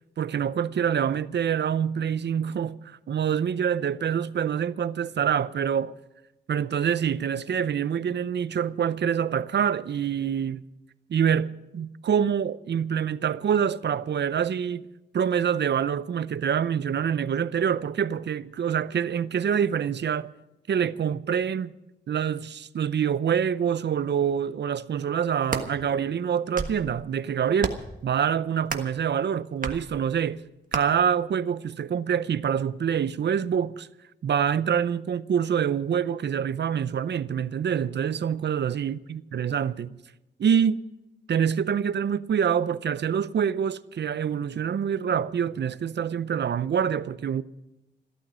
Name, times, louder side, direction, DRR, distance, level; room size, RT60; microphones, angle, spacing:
voice 1, 0.2-6.0 6.5-10.6 11.1-14.8 15.1-20.3 20.7-21.7 22.1-30.4 30.7-33.9 34.2-40.0 40.4-40.8 41.3-47.4, right 8 dB, 65° right, 0.6 m, -26 dB
sound 1, 25.2-25.7 26.3-26.8 27.6-27.9 28.7-29.0 29.6-29.8 30.7-30.8, right 4 dB, 45° right, 1.5 m, -31 dB
15.0 x 13.0 x 6.3 m
wide cardioid pair, 115°, 19 cm